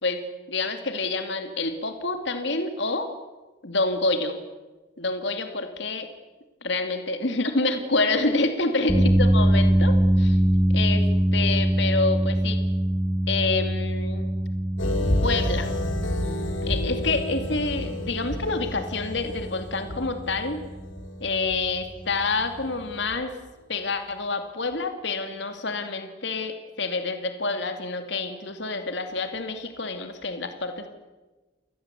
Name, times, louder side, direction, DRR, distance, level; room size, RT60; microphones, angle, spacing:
voice 1, 0.5-3.1 3.6-4.3 5.0-6.1 6.6-10.4 10.7-11.1 11.3-12.6 13.3-14.3 15.2-15.7 16.6-20.6 21.2-23.3 23.7-30.9, left 3 dB, 65° left, 7 dB, 2.6 m, -27 dB
sound 1, 8.9-23.2, right 1 dB, 5° right, 2.5 m, -24 dB
sound 2, 14.8-22.7 23.1-23.2, left 1 dB, 80° left, 3.2 m, -30 dB
28.5 x 20.0 x 8.3 m, 1.2 s
head